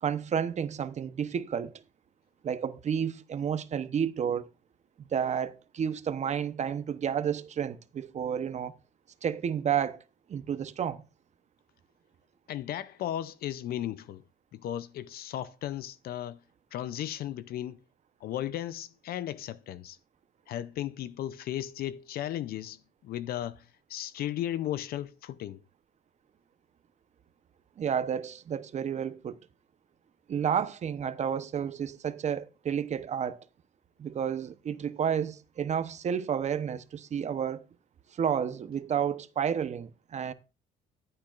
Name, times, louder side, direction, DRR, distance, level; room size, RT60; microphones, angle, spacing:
voice 1, 0.0-1.8 2.4-4.5 5.0-8.8 9.2-10.0 10.3-11.0 27.8-29.4 30.3-33.4 34.0-37.6 38.1-40.3, right 8 dB, 45° right, 0.9 m, -31 dB
voice 2, 12.5-14.2 14.5-16.4 16.7-17.8 18.2-20.0 20.5-25.6, left 12 dB, 65° left, 0.6 m, -35 dB
14.5 x 8.8 x 2.5 m
cardioid pair, 110°, 17 cm